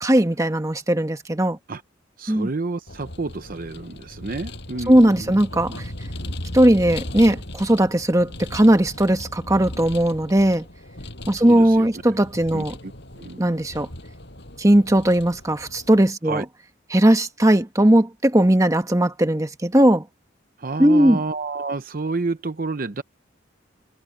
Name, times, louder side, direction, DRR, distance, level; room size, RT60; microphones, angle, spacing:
voice 1, 0.0-1.6 2.3-2.5 4.9-5.9 6.5-10.6 11.3-12.8 13.4-13.9 14.6-16.4 16.9-20.0 20.8-21.2, right 1 dB, 15° right, 1.4 m, -18 dB
voice 2, 2.2-5.3 5.7-5.8 6.2-6.3 11.3-11.9 12.5-12.9 13.2-13.6 16.3-16.5 20.6-23.0, right 3 dB, 50° right, 0.7 m, -30 dB
Vehicle, 2.9-16.1, left 1 dB, 65° left, 6.8 m, -37 dB
head